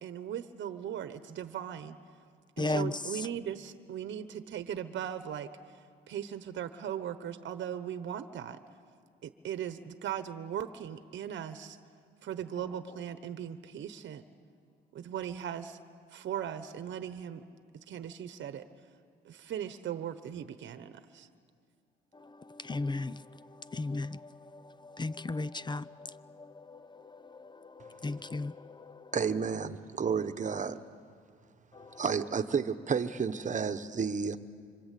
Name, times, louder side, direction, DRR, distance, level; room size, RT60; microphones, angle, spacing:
voice 1, 0.0-2.0 2.6-5.8 6.1-8.6 9.2-11.8 12.2-14.2 14.9-15.8 16.1-17.4 17.9-18.6 19.2-21.3, right 9 dB, 70° right, 1.1 m, -38 dB
voice 2, 2.6-3.3 22.1-29.2 31.7-32.0, left 2 dB, 20° left, 0.6 m, -37 dB
voice 3, 29.1-30.8 32.0-34.4, right 6 dB, 40° right, 1.2 m, -31 dB
26.5 x 25.0 x 8.4 m
cardioid pair, 90°, 20 cm